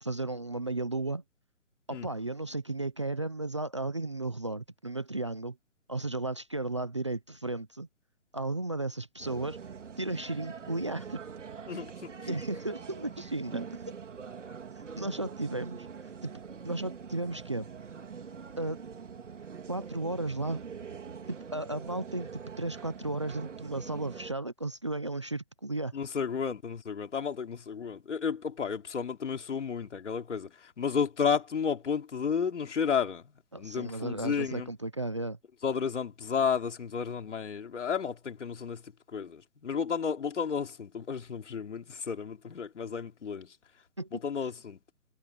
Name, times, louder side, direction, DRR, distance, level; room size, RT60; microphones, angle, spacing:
voice 1, 0.0-1.2 1.9-5.6 5.9-7.9 8.3-9.6 10.0-11.2 12.3-13.7 15.0-15.9 16.2-16.3 16.6-17.7 18.6-18.8 19.7-20.6 21.3-25.9 33.5-35.4 44.0-44.1, right 2 dB, 20° right, 0.6 m, -34 dB
sound 1, 9.2-24.3, right 6 dB, 60° right, 3.9 m, -44 dB
voice 2, 11.7-12.3 25.9-34.7 35.6-43.6 44.1-44.8, left 6 dB, 60° left, 3.5 m, -32 dB
hypercardioid pair, 165°, 41 cm